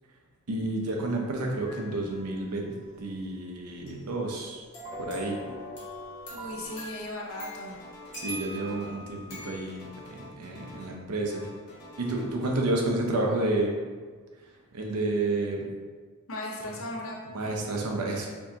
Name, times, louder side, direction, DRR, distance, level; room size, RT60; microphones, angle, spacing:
voice 1, 0.5-2.7 3.0-4.6 5.0-5.4 8.1-11.4 12.0-13.7 14.7-15.7 16.6-16.7 17.3-18.3, right 2 dB, 90° right, 0 dB, 0.7 m, -30 dB
sound 1, 1.7-2.1 3.9-9.6, left 1 dB, 50° left, 1.4 m, -44 dB
sound 2, 1.7-3.8 4.8-6.7, equal, 15° right, 0.3 m, -45 dB
voice 2, 6.3-7.8 16.3-17.2, left 1 dB, 65° left, -1 dB, 0.7 m, -37 dB
sound 3, 6.6-7.0 7.3-9.0 9.3-11.0 11.3-12.5, left 1 dB, 85° left, 1.4 m, -48 dB
4.5 x 2.8 x 2.8 m, 1.5 s
head